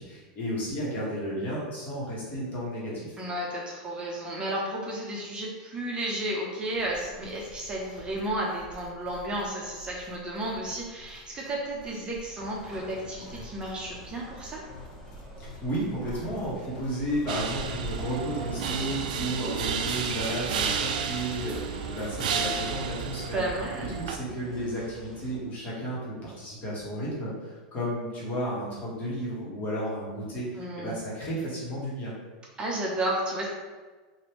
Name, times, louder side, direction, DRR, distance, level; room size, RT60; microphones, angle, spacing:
voice 1, 0.0-3.2 15.4-23.4 24.0-32.1, equal, 35° left, -6 dB, 1.3 m, -33 dB
voice 2, 3.2-14.6 23.3-24.0 30.6-31.0 32.6-33.5, right 1 dB, 20° right, -3 dB, 0.6 m, -32 dB
sound 1, 6.7-18.1, equal, 80° left, 0.5 m, -47 dB
sound 2, 12.3-25.4, equal, ahead, 1.2 m, -48 dB
sound 3, 17.3-24.2, right 6 dB, 80° right, 0.4 m, -32 dB
3.2 x 2.5 x 3.0 m, 1.3 s
supercardioid pair, 120°, 4 cm